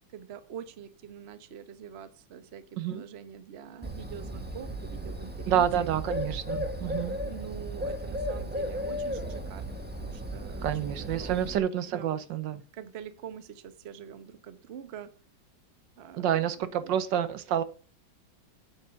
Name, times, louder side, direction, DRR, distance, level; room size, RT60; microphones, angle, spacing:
voice 1, 0.1-5.9 7.2-9.7 9.9-11.4 11.9-12.2 12.7-15.2 16.0-17.0, right 8 dB, 45° right, 0.9 m, -45 dB
Bird, 3.8-11.6, equal, 5° right, 1.1 m, -35 dB
voice 2, 5.5-7.2 10.6-12.6 16.2-17.6, right 10 dB, 75° right, 1.4 m, -28 dB
7.8 x 7.3 x 6.8 m
omnidirectional pair, 2.1 m